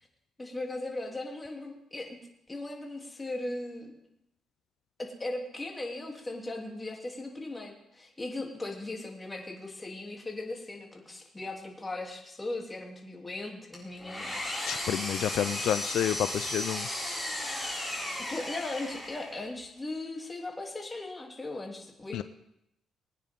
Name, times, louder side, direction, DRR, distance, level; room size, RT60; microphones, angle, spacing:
voice 1, 0.4-2.2 2.5-3.9 5.0-14.3 18.3-22.2, left 2 dB, 20° left, 0 dB, 3.1 m, -38 dB
Engine, 13.7-19.4, left 1 dB, 5° left, 5.9 m, -35 dB
voice 2, 14.7-16.9 22.1-22.2, left 10 dB, 75° left, 12 dB, 0.5 m, -29 dB
22.5 x 9.4 x 3.8 m, 0.81 s
cardioid pair, 90°, 0 cm